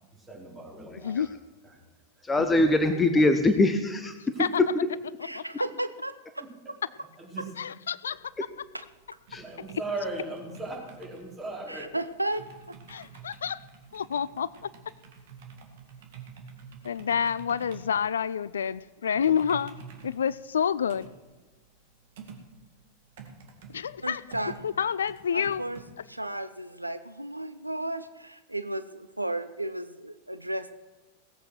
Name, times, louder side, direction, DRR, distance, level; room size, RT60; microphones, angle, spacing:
voice 1, 0.1-1.2 1.6-1.8 2.2-2.3 4.3-4.5 6.4-7.4 9.4-11.9, right 2 dB, 20° right, -2 dB, 4.5 m, -38 dB
voice 2, 2.2-4.1 4.6-4.7 9.3-9.4, left 2 dB, 15° left, 8 dB, 0.9 m, -22 dB
voice 3, 5.2-6.1 8.7-8.8 11.7-12.8 24.0-24.5 25.3-25.8 26.1-30.7, right 1 dB, 85° right, 12 dB, 0.5 m, -34 dB
voice 4, 7.6-8.3 12.9-13.6 13.9-14.5 16.8-19.7 20.0-21.1 23.7-24.2 24.6-25.7, left 7 dB, 65° left, 18 dB, 0.3 m, -28 dB
sound 1, 8.1-25.8, right 6 dB, 55° right, 2.1 m, -49 dB
17.5 x 8.1 x 6.3 m, 1.3 s
figure-of-eight pair, 90°, 0 cm